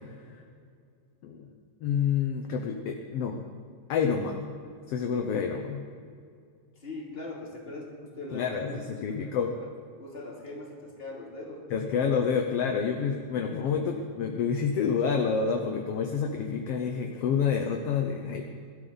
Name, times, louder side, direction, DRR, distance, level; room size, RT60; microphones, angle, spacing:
voice 1, 1.8-3.4 3.9-4.5 4.9-5.8 8.3-9.5 11.7-18.4, left 6 dB, 65° left, 3 dB, 1.7 m, -28 dB
voice 2, 6.8-9.7 10.0-12.4 13.4-13.6, left 2 dB, 20° left, -3 dB, 2.9 m, -41 dB
22.5 x 13.0 x 4.1 m, 2.3 s
omnidirectional pair, 3.3 m